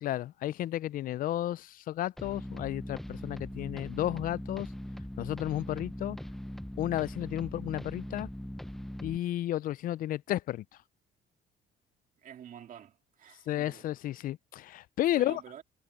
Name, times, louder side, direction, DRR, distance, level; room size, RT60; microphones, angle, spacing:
voice 1, 0.0-4.7 5.2-6.2 6.8-8.3 9.0-10.6 13.5-15.4, left 13 dB, 55° left, 0.4 m, -32 dB
sound 1, 2.2-9.2, equal, ahead, 0.5 m, -41 dB
voice 2, 12.2-13.9 15.1-15.6, right 9 dB, 50° right, 2.4 m, -48 dB
cardioid pair, 110°, 17 cm